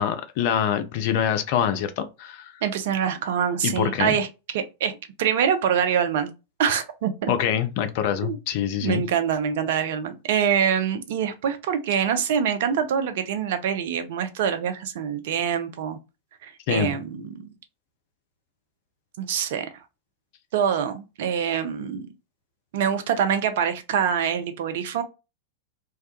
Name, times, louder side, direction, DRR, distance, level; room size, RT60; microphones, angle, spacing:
voice 1, 0.0-2.5 3.6-4.2 7.3-9.0 16.7-17.0, left 9 dB, 50° left, 0.4 m, -25 dB
voice 2, 2.6-4.3 4.5-6.3 6.6-7.3 8.2-8.4 8.8-16.0 16.4-17.5 19.2-19.7 20.5-22.1 22.7-25.0, right 8 dB, 55° right, 0.4 m, -25 dB
2.2 x 2.1 x 2.7 m
figure-of-eight pair, 90°, 0 cm